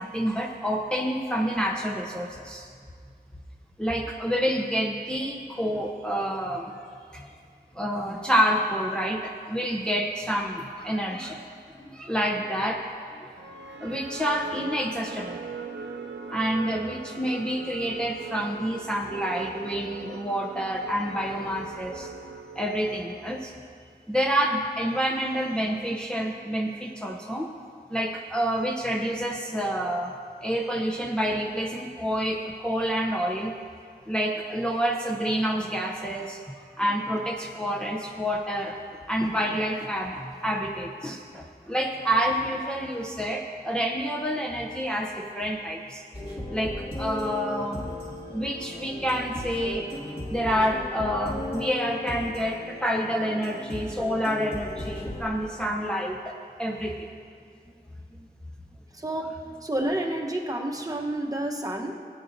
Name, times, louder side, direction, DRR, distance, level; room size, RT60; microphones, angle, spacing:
voice 1, 0.0-2.7 3.8-6.7 7.1-7.3 7.7-11.5 11.8-13.3 13.8-15.4 16.3-22.1 22.6-23.5 24.1-27.5 27.9-30.1 30.4-33.5 34.1-38.8 39.1-46.0 46.5-47.8 48.3-49.9 50.3-56.3 56.6-57.1, equal, 5° left, 0 dB, 0.7 m, -28 dB
sound 1, 13.4-23.6, right 4 dB, 85° right, 0.6 m, -40 dB
sound 2, 46.1-55.2, left 1 dB, 30° left, 2.2 m, -36 dB
voice 2, 58.9-59.3 59.6-61.9, right 1 dB, 20° right, 0 dB, 1.1 m, -29 dB
16.0 x 9.0 x 2.7 m, 2.1 s
wide cardioid pair, 65°, 18 cm